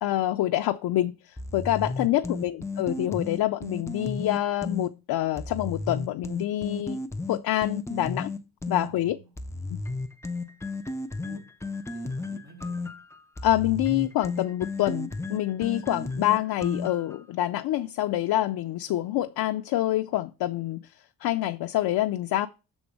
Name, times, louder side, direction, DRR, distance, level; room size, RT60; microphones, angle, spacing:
voice 1, 0.0-7.0 7.3-8.3 8.7-9.2 13.4-20.9 21.2-22.5, left 14 dB, 70° left, 0.5 m, -26 dB
sound 1, 1.4-4.9 5.4-8.9 9.4-17.2, left 3 dB, 10° left, 0.3 m, -33 dB
voice 2, 2.2-2.5 8.8-9.4 11.2-11.5 11.9-12.9, right 5 dB, 55° right, 2.5 m, -50 dB
7.2 x 3.5 x 6.2 m
cardioid pair, 165°, 38 cm